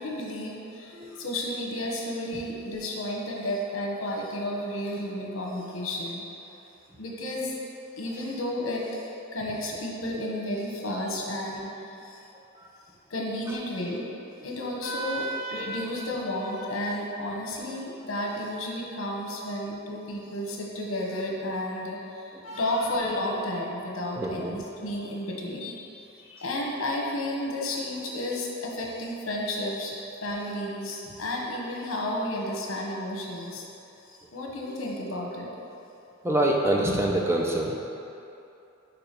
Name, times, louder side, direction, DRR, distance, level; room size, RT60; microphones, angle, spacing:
voice 1, 0.0-6.2 7.0-7.5 8.0-12.2 13.1-14.0 14.4-29.9 30.2-33.6 34.0-35.5, left 1 dB, 80° left, -2 dB, 1.0 m, -32 dB
voice 2, 24.2-24.5 36.2-37.9, right 1 dB, 15° right, -1 dB, 0.5 m, -25 dB
4.8 x 4.4 x 5.1 m, 2.8 s
head